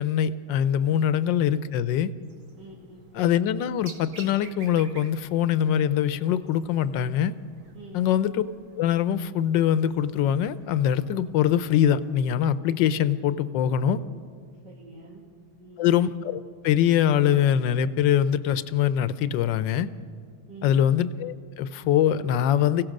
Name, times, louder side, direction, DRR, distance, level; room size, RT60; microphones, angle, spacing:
voice 1, 0.0-2.1 3.1-7.3 7.9-8.4 8.7-14.0 15.8-19.9 20.6-22.8, left 10 dB, 70° left, 14 dB, 1.3 m, -23 dB
sound 1, 2.2-12.5, right 3 dB, 80° right, 3.2 m, -52 dB
voice 2, 2.6-3.1 7.7-8.1 13.7-14.0 14.6-15.2 15.6-15.9 20.5-20.8, right 2 dB, 60° right, -3 dB, 2.8 m, -46 dB
29.5 x 16.5 x 6.5 m, 2.1 s
omnidirectional pair, 2.2 m